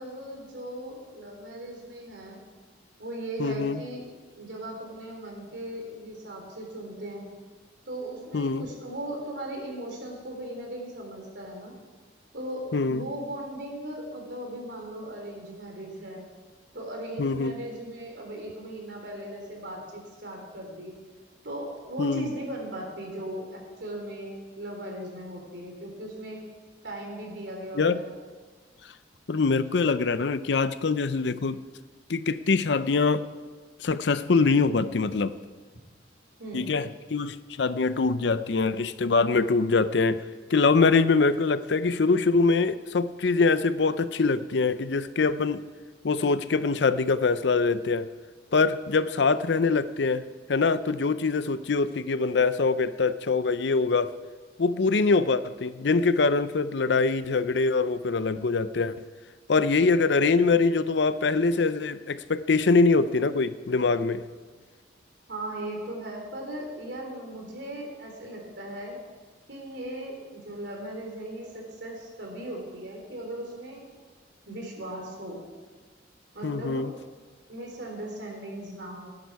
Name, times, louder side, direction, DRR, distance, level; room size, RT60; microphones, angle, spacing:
voice 1, 0.0-2.4 3.0-4.1 4.3-7.3 7.9-11.7 12.3-16.3 16.7-21.0 21.4-26.4 26.8-28.1 36.4-36.7 65.3-69.0 69.5-73.8 74.5-75.4 76.3-76.9 77.5-79.1, right 1 dB, 65° right, 1 dB, 3.6 m, -38 dB
voice 2, 3.4-3.8 8.3-8.6 12.7-13.1 17.2-17.5 22.0-22.3 27.7-28.0 29.3-31.6 32.1-33.3 33.8-35.4 36.5-40.2 40.5-45.7 46.0-48.1 48.5-50.2 50.5-54.1 54.6-58.9 59.5-64.2 76.4-76.9, left 4 dB, 65° left, 14 dB, 0.6 m, -24 dB
18.5 x 10.5 x 4.7 m, 1.4 s
head